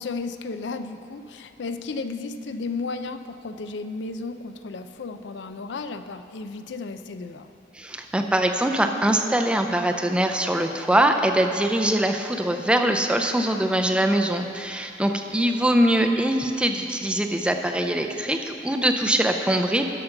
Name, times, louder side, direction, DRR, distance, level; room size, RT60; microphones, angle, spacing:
voice 1, 0.0-7.5, left 3 dB, 75° left, 9 dB, 0.5 m, -33 dB
voice 2, 7.7-19.9, right 1 dB, 5° right, 5 dB, 0.4 m, -22 dB
11.5 x 5.8 x 5.8 m, 2.6 s
head